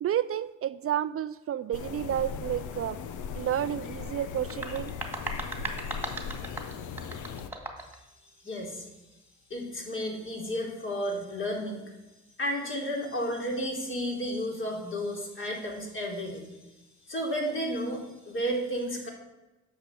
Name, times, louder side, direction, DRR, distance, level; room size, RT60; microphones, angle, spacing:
voice 1, 0.0-3.0 3.3-4.9, right 11 dB, 50° right, 0.4 m, -30 dB
sound 1, 1.7-7.5, left 7 dB, 80° left, 0.9 m, -38 dB
sound 2, 4.4-8.0, right 2 dB, 5° right, 2.1 m, -38 dB
voice 2, 8.4-8.9 9.5-11.8 12.4-16.4 17.1-19.1, equal, 40° left, 3.7 m, -32 dB
10.0 x 6.5 x 7.6 m
cardioid pair, 90°, 30 cm